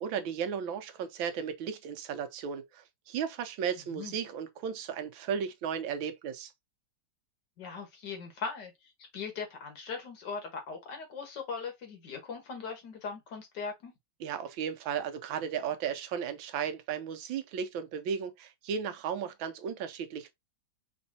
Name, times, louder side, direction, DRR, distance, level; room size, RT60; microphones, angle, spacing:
voice 1, 0.0-6.5 14.2-20.3, right 7 dB, 85° right, 1.5 m, -35 dB
voice 2, 7.6-13.9, left 5 dB, 60° left, 1.9 m, -40 dB
5.2 x 3.3 x 2.7 m
omnidirectional pair, 2.1 m